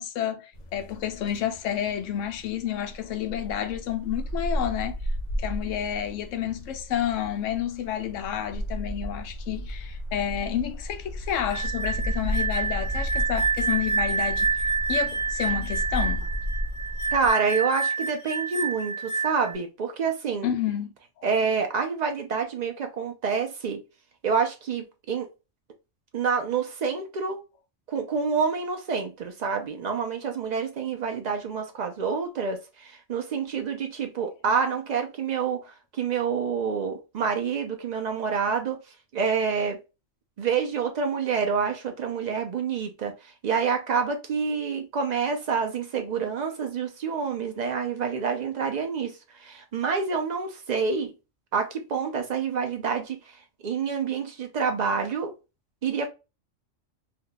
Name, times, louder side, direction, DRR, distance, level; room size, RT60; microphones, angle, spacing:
voice 1, 0.0-5.0 5.4-14.5 14.9-16.3 20.4-20.9, left 10 dB, 75° left, 0.9 m, -30 dB
sound 1, 0.5-17.3, equal, 50° left, 0.6 m, -34 dB
sound 2, 11.3-19.6, right 4 dB, 30° left, 1.1 m, -28 dB
voice 2, 17.1-20.5 21.2-23.8 24.2-25.3 26.1-27.4 27.9-35.6 36.0-38.8 39.1-39.8 40.4-43.1 43.4-51.1 51.5-53.2 53.6-55.3 55.8-56.1, right 5 dB, 80° right, 0.3 m, -27 dB
2.7 x 2.2 x 3.7 m
omnidirectional pair, 1.3 m